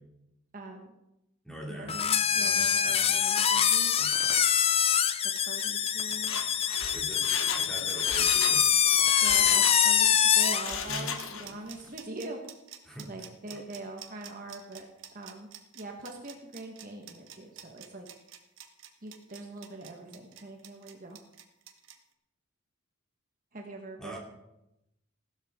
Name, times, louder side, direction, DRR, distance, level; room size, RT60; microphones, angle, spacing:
voice 1, 0.5-0.9 1.7-3.9 5.4-6.4 9.2-12.4 13.1-14.9 15.1-15.5 15.7-18.1 19.0-21.2 23.5-24.2, right 2 dB, 40° right, 1 dB, 1.4 m, -43 dB
voice 2, 1.4-2.0 2.3-3.1 3.5-3.6 4.0-4.1 6.9-7.3 7.5-8.6 10.9-11.1 12.8-13.1 13.5-13.6 24.0-24.2, right 1 dB, 5° left, -2 dB, 2.7 m, -43 dB
sound 1, 1.9-10.7, left 8 dB, 25° left, 0.4 m, -24 dB
sound 2, 4.1-22.0, right 10 dB, 60° right, 1.4 m, -48 dB
Mechanisms, 6.1-8.6 8.9-10.1 10.5-11.6 11.9-12.0, left 6 dB, 65° left, 1.2 m, -36 dB
16.0 x 12.5 x 3.7 m, 0.89 s
head